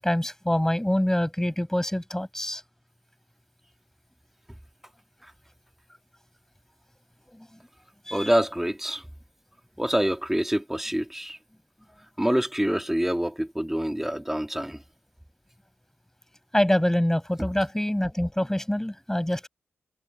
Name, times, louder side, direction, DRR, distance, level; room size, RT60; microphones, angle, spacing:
voice 1, 0.0-2.6 7.4-7.5 8.1-8.3 16.5-19.5, left 1 dB, 10° left, 8.0 m, -25 dB
voice 2, 8.1-9.1 9.8-11.4 12.2-14.8 17.4-17.5, equal, 5° right, 3.1 m, -26 dB
supercardioid pair, 45°, 5 cm